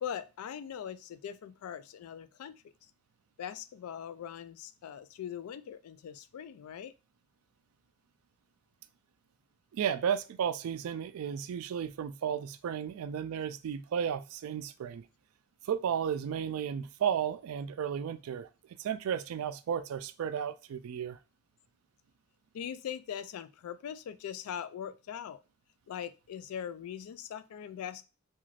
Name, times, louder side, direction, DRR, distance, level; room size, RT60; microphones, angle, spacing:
voice 1, 0.0-2.6 3.4-6.9 22.5-25.4 25.9-28.0, left 9 dB, 85° left, 0.3 m, -41 dB
voice 2, 9.7-15.0 15.6-18.5 18.8-21.2, right 8 dB, 80° right, 0.3 m, -33 dB
3.2 x 2.4 x 2.4 m
head